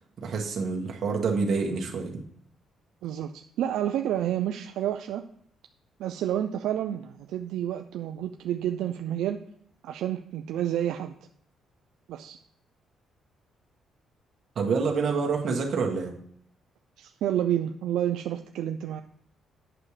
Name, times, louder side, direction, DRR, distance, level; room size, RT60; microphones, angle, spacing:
voice 1, 0.2-2.1 14.5-16.1, right 4 dB, 60° right, 0 dB, 1.6 m, -27 dB
voice 2, 3.0-5.2 6.0-9.4 9.8-11.1 12.1-12.4 17.0-19.0, right 11 dB, 85° right, 6 dB, 0.4 m, -29 dB
8.7 x 7.1 x 3.3 m, 0.67 s
cardioid pair, 90°, 0 cm